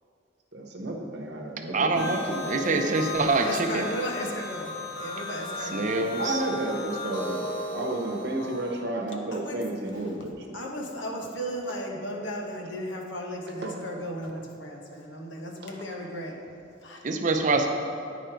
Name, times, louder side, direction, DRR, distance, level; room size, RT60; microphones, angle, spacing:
voice 1, 0.5-3.1 6.2-10.6 13.6-13.7, right 2 dB, 60° right, 1 dB, 1.0 m, -32 dB
voice 2, 1.7-3.9 5.7-6.4 17.0-17.7, right 3 dB, 40° right, 5 dB, 0.6 m, -25 dB
sound 1, 1.9-8.8, left 2 dB, 60° left, 1.4 m, -35 dB
voice 3, 3.4-6.1 9.3-9.6 9.9-10.2 10.5-16.4 16.8-17.1, equal, 80° left, 1 dB, 1.0 m, -35 dB
9.4 x 5.1 x 4.5 m, 2.6 s
head